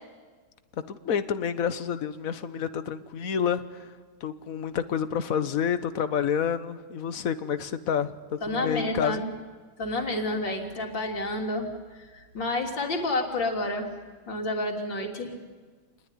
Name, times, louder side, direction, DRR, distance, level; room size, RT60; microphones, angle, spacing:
voice 1, 0.9-3.9 4.2-9.2, left 8 dB, 50° left, 11 dB, 1.4 m, -29 dB
voice 2, 8.4-9.3 9.8-11.7 12.1-13.9 14.3-15.3, left 2 dB, 70° left, 1 dB, 3.9 m, -29 dB
28.0 x 20.0 x 9.9 m, 1.4 s
omnidirectional pair, 2.1 m